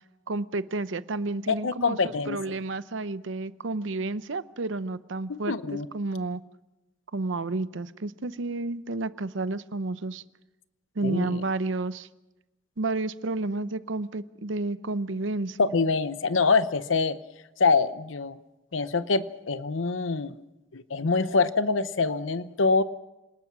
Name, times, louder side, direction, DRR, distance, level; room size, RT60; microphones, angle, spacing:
voice 1, 0.3-2.0 2.3-6.4 7.1-10.2 11.0-12.1 12.8-15.6, right 2 dB, 75° right, 14 dB, 0.8 m, -31 dB
voice 2, 1.5-2.4 5.3-5.9 11.0-11.4 15.6-17.2 17.6-18.4 18.7-20.3 20.7-22.8, left 4 dB, 85° left, 14 dB, 0.8 m, -25 dB
27.5 x 19.5 x 6.1 m, 1.0 s
head